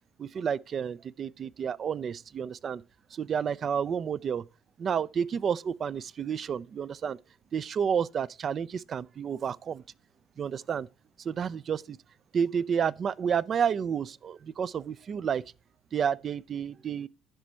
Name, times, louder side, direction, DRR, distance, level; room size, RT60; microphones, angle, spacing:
voice 1, 0.2-2.8 3.1-4.4 4.8-7.2 7.5-9.8 10.4-10.9 11.2-12.0 12.3-15.4 15.9-17.1, right 7 dB, 45° right, 0.4 m, -30 dB
12.5 x 5.1 x 4.4 m
supercardioid pair, 70°, 0 cm